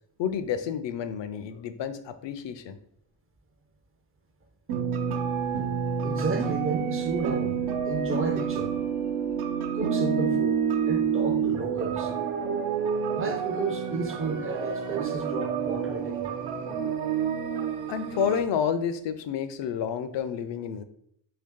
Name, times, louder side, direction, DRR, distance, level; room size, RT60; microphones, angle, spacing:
voice 1, 0.2-2.8 17.9-20.8, left 7 dB, 60° left, 0.5 m, -30 dB
sound 1, 4.7-18.4, right 7 dB, 80° right, 0.7 m, -28 dB
voice 2, 6.0-8.7 9.7-12.1 13.1-16.4, right 3 dB, 30° right, 0.4 m, -32 dB
2.8 x 2.8 x 3.6 m
cardioid pair, 100°, 50 cm